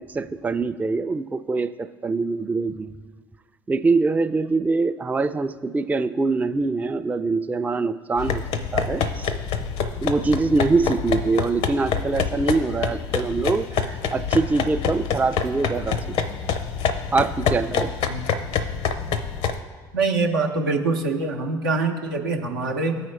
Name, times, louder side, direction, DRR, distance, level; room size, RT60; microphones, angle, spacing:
voice 1, 0.0-2.9 3.7-8.4 8.7-9.3 10.0-16.5 17.1-17.9, right 3 dB, 15° right, 10 dB, 0.3 m, -24 dB
sound 1, 8.2-19.6, left 6 dB, 65° left, 0.6 m, -26 dB
voice 2, 19.9-23.0, right 3 dB, 90° right, 2 dB, 0.7 m, -24 dB
13.5 x 4.8 x 3.2 m, 1.5 s
hypercardioid pair, 55°, 11 cm